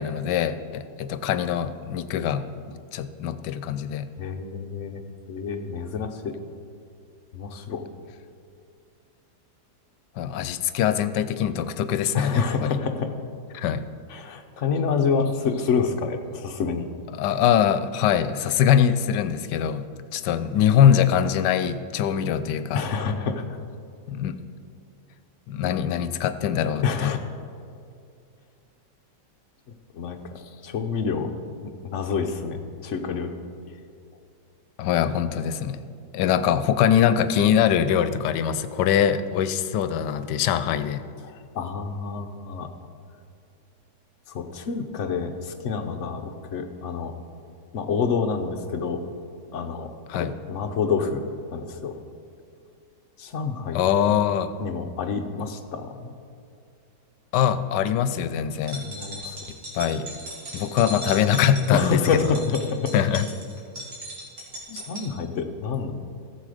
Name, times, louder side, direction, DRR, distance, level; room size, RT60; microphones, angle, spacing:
voice 1, 0.0-4.1 10.2-12.8 13.5-13.8 17.1-19.9 20.1-22.8 24.1-24.4 25.5-27.1 34.8-35.8 36.1-41.0 50.1-50.3 53.7-54.5 57.3-58.9 59.7-60.1 60.5-62.4 62.9-63.3 64.7-64.8, left 9 dB, 85° left, 12 dB, 1.2 m, -23 dB
voice 2, 4.2-5.0 5.3-6.4 7.3-7.8 12.1-13.1 14.1-16.9 22.7-23.4 26.8-27.2 29.9-31.3 31.6-33.4 41.2-42.7 44.3-47.1 47.7-49.0 49.5-51.3 51.5-51.9 53.2-53.9 54.6-56.2 58.8-59.4 61.7-62.9 64.7-65.9, left 5 dB, 55° left, 5 dB, 1.0 m, -28 dB
sound 1, 58.5-65.1, right 1 dB, 75° right, 2.9 m, -38 dB
14.5 x 7.4 x 4.9 m, 2.4 s
omnidirectional pair, 1.8 m